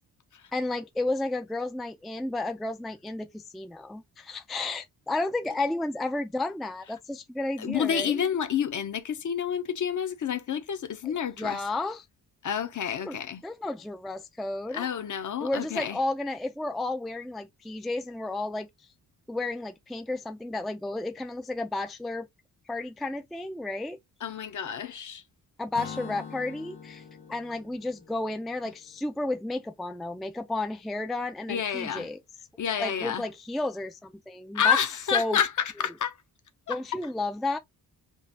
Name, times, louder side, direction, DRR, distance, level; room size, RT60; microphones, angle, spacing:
voice 1, 0.5-8.2 11.4-12.1 13.0-13.2 13.4-14.9 15.4-18.7 19.3-22.3 22.7-24.0 25.6-27.0 27.3-32.2 32.8-34.8 35.1-35.4 36.7-37.6, left 2 dB, ahead, 0.3 m, -32 dB
voice 2, 7.6-11.6 12.4-13.4 14.7-16.0 24.2-25.2 31.5-32.1 32.6-33.2 34.5-36.2 36.7-36.8, left 8 dB, 50° left, 0.7 m, -29 dB
Acoustic guitar / Strum, 25.7-29.4, left 6 dB, 80° left, 0.9 m, -44 dB
3.9 x 2.4 x 2.7 m
cardioid pair, 80°, 39 cm